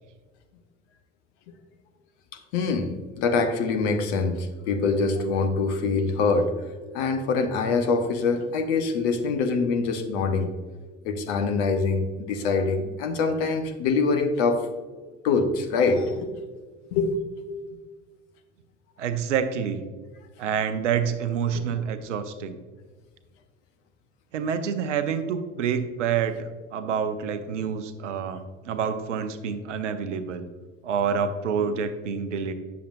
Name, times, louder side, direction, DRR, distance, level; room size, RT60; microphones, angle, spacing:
voice 1, 2.3-6.5 6.9-10.5 11.0-14.7 15.2-16.3 16.9-17.2 17.7-17.8, left 4 dB, 65° left, 6 dB, 1.0 m, -24 dB
voice 2, 19.0-19.8 20.4-22.6 24.3-30.5 30.8-32.5, right 7 dB, 80° right, 10 dB, 0.7 m, -27 dB
9.3 x 6.9 x 2.6 m, 1.4 s
figure-of-eight pair, 60°, 36 cm